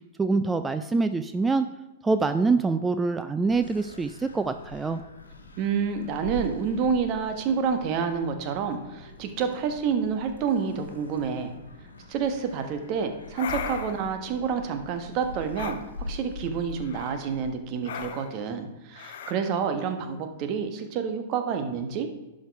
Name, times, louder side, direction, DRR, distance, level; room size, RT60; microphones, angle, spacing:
voice 1, 0.2-1.7 2.0-5.0, right 3 dB, 10° right, 10 dB, 0.4 m, -25 dB
sound 1, 3.5-17.5, left 2 dB, 80° left, 1.2 m, -44 dB
voice 2, 5.6-11.5 12.1-22.1, right 6 dB, 40° right, 7 dB, 1.3 m, -28 dB
sound 2, 13.3-14.1 15.5-15.8 16.8-17.2 17.8-18.4 18.9-19.3, left 7 dB, 60° left, 0.8 m, -36 dB
11.5 x 5.3 x 4.7 m, 1.0 s
figure-of-eight pair, 105°, 0 cm